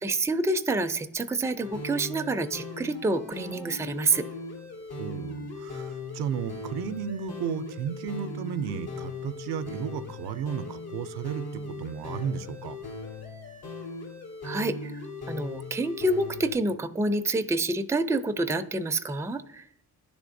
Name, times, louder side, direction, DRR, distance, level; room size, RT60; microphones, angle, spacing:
voice 1, 0.0-4.2 14.4-14.9 15.3-19.6, right 2 dB, 10° right, 0.4 m, -27 dB
sound 1, 1.6-16.5, left 3 dB, 80° left, 2.3 m, -39 dB
voice 2, 5.0-12.8, right 8 dB, 80° right, 0.5 m, -34 dB
10.5 x 3.5 x 2.6 m
cardioid pair, 60°, 38 cm